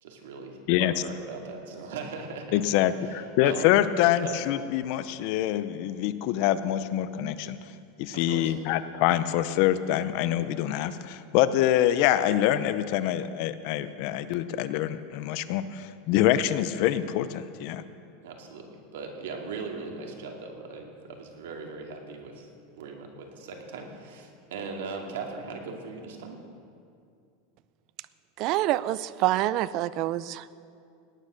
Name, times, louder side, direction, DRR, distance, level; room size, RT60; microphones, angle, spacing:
voice 1, 0.0-2.6 3.0-3.7 4.2-4.4 8.1-8.5 18.2-22.5 22.7-26.4, right 4 dB, 85° right, 2 dB, 2.4 m, -39 dB
voice 2, 2.5-7.6 8.0-17.8, left 12 dB, 50° left, 13 dB, 0.6 m, -25 dB
voice 3, 28.4-30.5, right 15 dB, 40° right, 17 dB, 0.4 m, -26 dB
18.0 x 9.7 x 6.5 m, 2.4 s
supercardioid pair, 160°, 0 cm